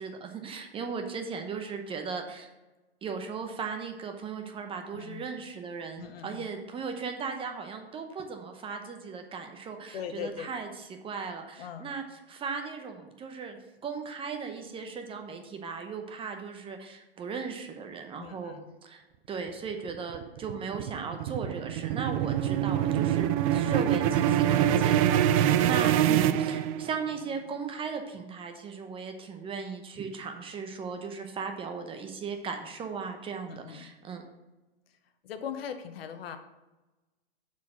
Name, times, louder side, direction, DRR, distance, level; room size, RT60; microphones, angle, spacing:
voice 1, 0.0-2.5 3.0-18.6 18.8-34.2, right 5 dB, 15° right, 5 dB, 0.8 m, -37 dB
voice 2, 4.9-5.2 6.0-6.4 9.9-10.5 11.6-11.9 18.2-18.7 25.2-25.6 33.5-33.9 35.2-36.4, left 8 dB, 70° left, 8 dB, 1.0 m, -40 dB
sound 1, 19.9-27.1, right 11 dB, 35° right, 0.4 m, -25 dB
7.3 x 4.4 x 5.8 m, 1.1 s
hypercardioid pair, 125°, 31 cm